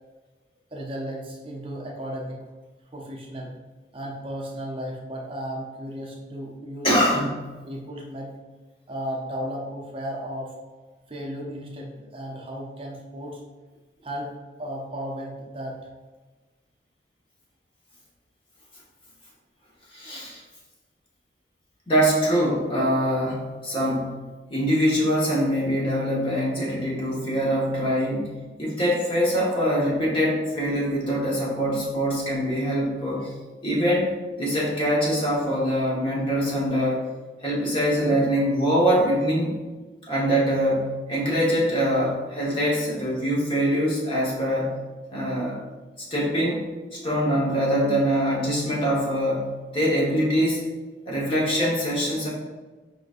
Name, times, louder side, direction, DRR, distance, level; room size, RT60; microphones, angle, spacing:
voice 1, 0.7-2.4 2.9-3.5 3.9-7.2 7.7-8.3 8.9-10.5 11.1-13.4 14.0-15.8, equal, 30° right, -2 dB, 0.6 m, -34 dB
voice 2, 6.8-7.5 19.9-20.4 21.9-24.2 24.5-33.3 33.6-37.0 37.4-39.6 40.1-44.7 45.1-45.6 46.1-46.6 46.9-50.6 51.0-52.3, equal, 30° left, -5 dB, 1.1 m, -23 dB
4.8 x 3.9 x 2.5 m, 1.2 s
head